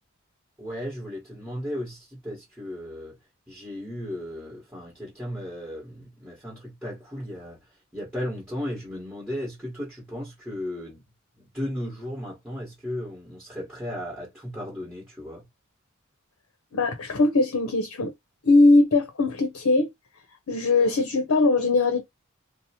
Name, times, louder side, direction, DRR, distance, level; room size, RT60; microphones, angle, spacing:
voice 1, 0.6-3.2 3.5-7.6 7.9-11.0 11.4-15.5, left 1 dB, 10° right, 1.1 m, -35 dB
voice 2, 16.7-18.1 18.4-19.9 20.5-22.0, left 2 dB, 75° left, 0.6 m, -20 dB
2.8 x 2.0 x 2.8 m
head